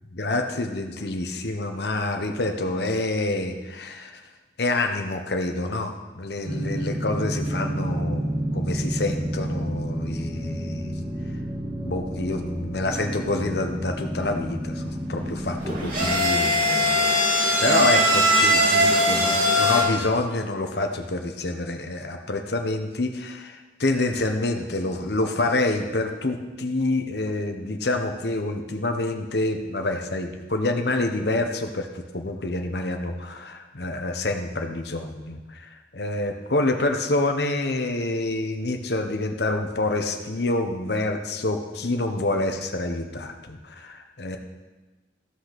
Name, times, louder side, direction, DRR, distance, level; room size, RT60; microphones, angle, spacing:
voice 1, 0.1-4.2 4.6-11.0 11.8-31.9 32.1-44.4, left 2 dB, 65° left, 5 dB, 1.0 m, -27 dB
sound 1, 6.5-16.2, right 1 dB, 20° right, 1.2 m, -30 dB
sound 2, 15.5-19.8, equal, 50° right, 2.8 m, -20 dB
14.5 x 5.7 x 6.0 m, 1.2 s
head